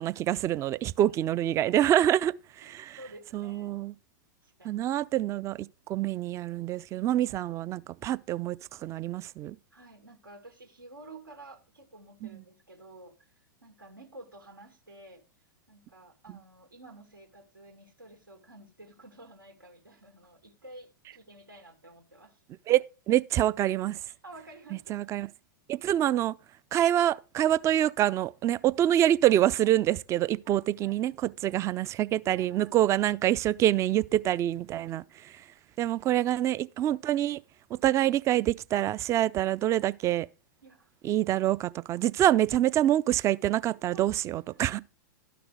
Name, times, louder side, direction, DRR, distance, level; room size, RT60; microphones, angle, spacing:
voice 1, 0.0-3.0 3.3-4.0 4.6-8.6 8.8-9.6 12.2-12.3 16.3-16.4 22.7-24.0 24.9-25.3 25.7-26.3 26.7-35.0 35.8-37.4 37.8-40.3 41.0-44.8, right 12 dB, 25° right, 0.4 m, -26 dB
voice 2, 3.0-3.7 4.4-4.8 9.7-15.2 15.7-22.4 24.1-25.0 28.4-28.8 30.5-31.0 31.5-31.6 32.3-32.7 34.9-35.0 40.6-40.9 43.9-44.1, right 2 dB, 85° right, 2.6 m, -51 dB
12.0 x 6.0 x 4.8 m
figure-of-eight pair, 100°, 11 cm